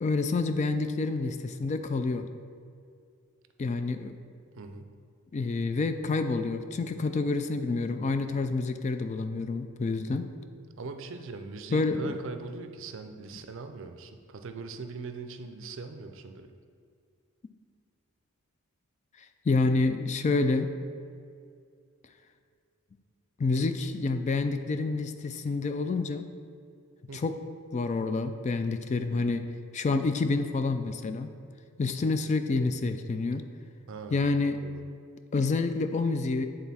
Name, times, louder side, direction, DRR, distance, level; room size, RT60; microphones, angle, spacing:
voice 1, 0.0-2.3 3.6-4.1 5.3-10.3 11.7-12.1 19.2-20.7 23.4-26.3 27.1-27.4 27.7-31.3 31.8-33.4 34.1-34.6 35.3-36.4, left 3 dB, 35° left, 8 dB, 0.3 m, -28 dB
voice 2, 4.5-4.9 10.8-16.5 27.1-27.3 33.9-34.8, right 4 dB, 60° right, 7 dB, 0.5 m, -41 dB
8.2 x 3.9 x 4.2 m, 2.3 s
head